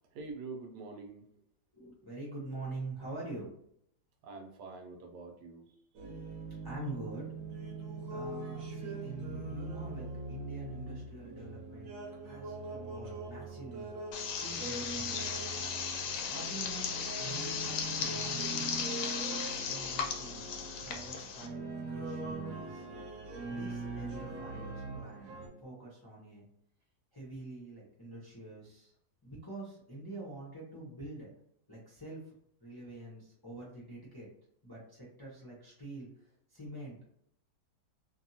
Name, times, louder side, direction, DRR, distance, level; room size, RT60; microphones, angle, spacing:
voice 1, 0.1-1.3 4.2-5.7, right 3 dB, 80° right, 4 dB, 1.2 m, -45 dB
voice 2, 1.7-3.5 6.6-7.3 8.1-11.9 12.2-14.0 14.3-15.4 16.3-18.8 19.7-20.5 20.8-22.9 23.5-25.3 25.6-26.5 27.1-28.9 29.2-31.3 31.7-32.3 32.6-34.3 34.6-37.1, right 2 dB, 20° left, -6 dB, 0.6 m, -46 dB
sound 1, 5.9-25.5, right 3 dB, 60° right, 1.0 m, -42 dB
sound 2, 14.1-21.5, left 6 dB, 80° left, 1.2 m, -36 dB
2.8 x 2.7 x 2.7 m, 0.70 s
omnidirectional pair, 1.8 m